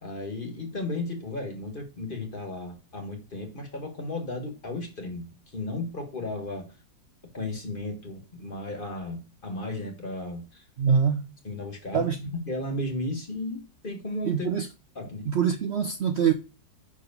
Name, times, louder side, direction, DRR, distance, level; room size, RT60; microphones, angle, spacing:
voice 1, 0.0-6.7 7.3-10.6 11.4-14.5 14.9-15.3, left 2 dB, 30° left, 1.4 m, -34 dB
voice 2, 10.8-11.3 11.9-12.2 14.3-14.7 15.3-16.3, right 7 dB, 80° right, 0.5 m, -24 dB
5.9 x 5.0 x 5.3 m
omnidirectional pair, 2.0 m